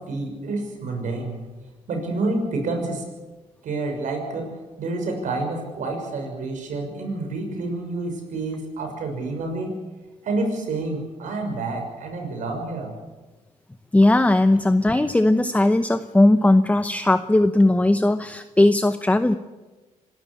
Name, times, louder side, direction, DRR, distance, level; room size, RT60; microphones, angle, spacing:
voice 1, 0.0-1.4 1.9-3.0 3.6-9.7 10.2-12.9, right 2 dB, 70° right, 3 dB, 6.4 m, -28 dB
voice 2, 13.9-19.3, left 1 dB, 10° left, 10 dB, 0.9 m, -18 dB
25.5 x 13.0 x 8.6 m, 1.2 s
cardioid pair, 70°, 13 cm